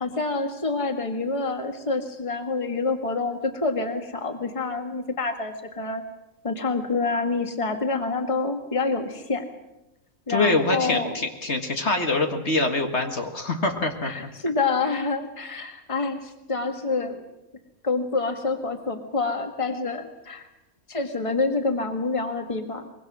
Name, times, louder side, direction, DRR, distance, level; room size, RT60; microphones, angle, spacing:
voice 1, 0.0-6.0 6.4-9.5 10.3-11.1 14.0-17.2 17.8-20.5 20.9-22.9, left 3 dB, 25° left, 5 dB, 1.8 m, -27 dB
voice 2, 10.3-14.3, left 2 dB, 55° left, 4 dB, 2.2 m, -24 dB
24.0 x 22.0 x 6.2 m, 0.96 s
omnidirectional pair, 1.4 m